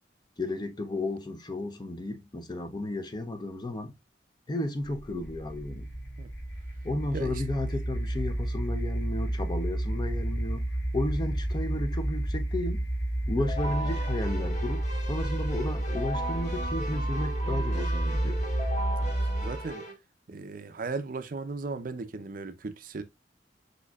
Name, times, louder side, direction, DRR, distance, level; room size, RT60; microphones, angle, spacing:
voice 1, 0.4-3.9 4.5-5.9 6.8-12.8 13.3-18.4, left 2 dB, 25° left, 0.6 m, -33 dB
sound 1, 4.8-19.7, right 1 dB, 85° left, 1.3 m, -31 dB
Keyboard (musical), 13.4-19.9, right 1 dB, 40° left, 1.5 m, -37 dB
voice 2, 19.0-19.8 20.3-23.0, right 3 dB, 50° right, 0.5 m, -37 dB
5.2 x 4.4 x 2.3 m
head